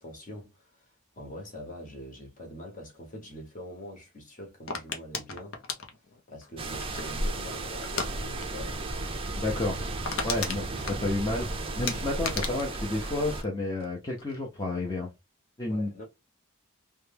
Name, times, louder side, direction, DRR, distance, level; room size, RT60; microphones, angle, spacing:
voice 1, 0.0-5.6 6.3-8.8 15.7-16.0, left 1 dB, 35° left, 1.1 m, -44 dB
sound 1, 4.7-7.2 7.8-8.1 8.4-8.7 8.9-9.0 9.4-9.5 9.8-11.5 11.9-13.9 14.2-14.6, left 5 dB, 60° left, 0.7 m, -35 dB
sound 2, 6.6-13.4, right 2 dB, 25° right, 0.5 m, -34 dB
voice 2, 9.3-9.9 10.2-15.1 15.6-15.9, left 2 dB, 20° left, 0.6 m, -31 dB
3.0 x 2.2 x 3.3 m
head